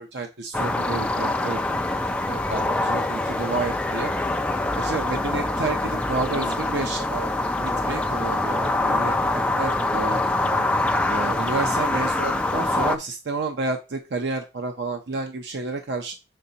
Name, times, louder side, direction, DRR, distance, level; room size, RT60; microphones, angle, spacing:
voice 1, 0.0-1.6 2.3-4.1 4.8-7.3 7.6-10.2 11.1-16.1, right 3 dB, 75° right, 5 dB, 0.6 m, -30 dB
sound 1, 0.5-13.0, left 2 dB, 5° left, 0.3 m, -24 dB
7.5 x 5.4 x 2.8 m, 0.30 s
head